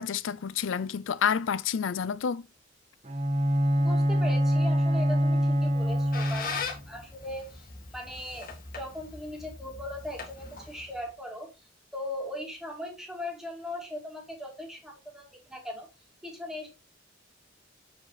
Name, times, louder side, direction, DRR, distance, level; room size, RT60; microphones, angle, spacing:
voice 1, 0.0-2.4, left 7 dB, 75° left, 0.5 m, -29 dB
Bowed string instrument, 3.0-6.8, equal, 35° right, 1.4 m, -25 dB
voice 2, 3.8-8.5 8.7-11.5 11.9-15.9 16.2-16.7, left 1 dB, ahead, 2.4 m, -39 dB
Squeak, 5.6-11.1, left 5 dB, 50° left, 2.0 m, -40 dB
8.3 x 4.9 x 4.0 m
head